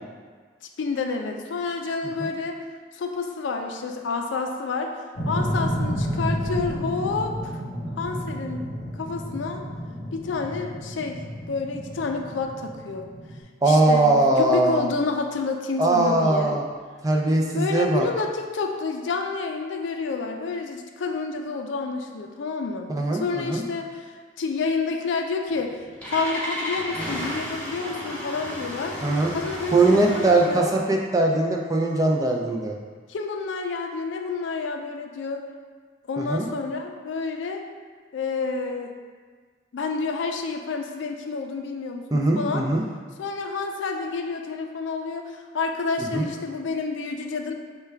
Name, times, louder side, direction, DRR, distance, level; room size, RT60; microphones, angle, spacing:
voice 1, 0.8-2.6 2.9-4.9 5.3-7.5 8.0-8.7 9.0-9.6 10.1-11.2 11.5-13.1 13.7-16.6 17.5-24.1 24.4-29.0 29.3-30.7 33.1-35.4 36.1-37.6 38.1-38.9 39.7-42.7 43.2-47.5, left 4 dB, 90° left, 3 dB, 0.4 m, -29 dB
sound 1, 5.2-13.4, equal, 50° left, 0.8 m, -31 dB
voice 2, 13.6-14.9 15.8-16.6 17.0-18.1 22.9-23.6 29.0-29.3 29.7-32.8 36.2-36.5 42.1-42.8 46.1-46.2, right 2 dB, 20° right, 0 dB, 0.3 m, -21 dB
Engine starting, 25.5-30.7, equal, 10° left, 0.7 m, -33 dB
5.6 x 2.2 x 3.3 m, 1.5 s
head